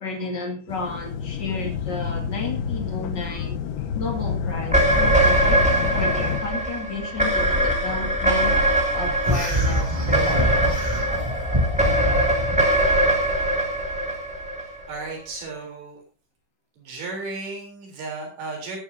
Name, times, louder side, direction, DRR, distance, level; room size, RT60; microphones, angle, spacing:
voice 1, 0.0-3.6 3.9-8.6 8.9-10.9, left 3 dB, 50° left, 1.2 m, -32 dB
sound 1, 0.7-6.4, left 7 dB, 80° left, 3.7 m, -29 dB
sound 2, 4.6-15.1, right 1 dB, 5° right, 1.4 m, -22 dB
sound 3, 9.2-12.7, equal, 40° right, 0.4 m, -24 dB
voice 2, 14.6-16.0 16.8-18.8, right 3 dB, 65° right, 5.6 m, -34 dB
18.0 x 10.0 x 2.7 m
omnidirectional pair, 5.6 m